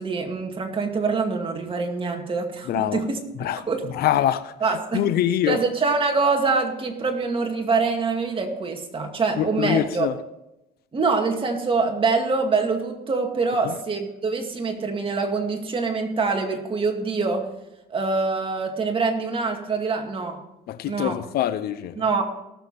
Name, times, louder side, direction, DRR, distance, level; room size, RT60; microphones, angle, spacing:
voice 1, 0.0-3.2 3.6-3.8 4.6-5.1 5.5-10.1 10.9-17.5 17.9-20.4 20.8-21.2 21.9-22.2, right 4 dB, 30° right, 2.2 m, -25 dB
voice 2, 2.7-3.0 3.4-3.6 4.0-4.5 4.9-5.6 9.4-10.1 13.6-13.7 20.7-21.9, left 11 dB, 70° left, 0.7 m, -24 dB
18.5 x 7.2 x 4.2 m
cardioid pair, 110°, 17 cm